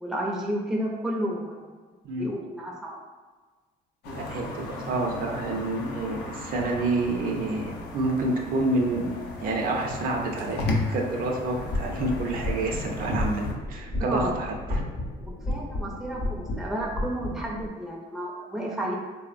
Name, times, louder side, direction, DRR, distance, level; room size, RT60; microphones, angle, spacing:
voice 1, 0.0-1.7 2.2-3.0 14.0-14.3 15.5-18.9, right 1 dB, ahead, -2 dB, 0.4 m, -31 dB
sound 1, 4.0-13.5, left 2 dB, 75° left, 0.5 m, -35 dB
voice 2, 4.1-9.1 9.4-14.8, right 2 dB, 60° right, 1 dB, 0.4 m, -28 dB
sound 2, 11.5-17.7, left 1 dB, 35° left, 0.7 m, -32 dB
2.9 x 2.0 x 2.4 m, 1.4 s
cardioid pair, 110°, 17 cm